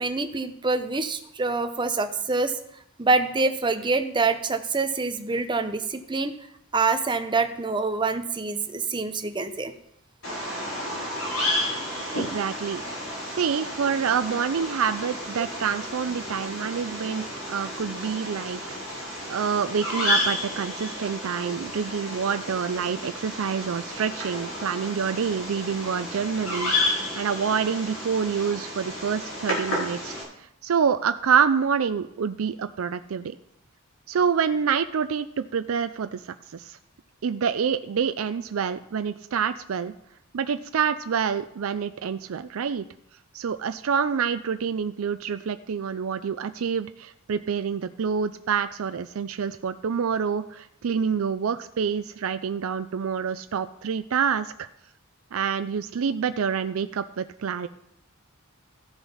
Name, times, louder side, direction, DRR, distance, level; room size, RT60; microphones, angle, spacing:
voice 1, 0.0-2.6 3.0-6.3 6.7-9.7, right 3 dB, 20° right, 8 dB, 0.8 m, -26 dB
Bird vocalization bird call bird song, 10.2-30.2, left 1 dB, 70° left, 4.9 m, -31 dB
voice 2, 12.1-12.8 13.3-18.8 19.3-30.2 30.6-33.4 34.1-36.8 37.2-39.9 40.3-42.9 43.3-54.7 55.3-57.7, right 6 dB, 75° right, 11 dB, 0.4 m, -27 dB
14.0 x 7.1 x 5.6 m, 0.76 s
head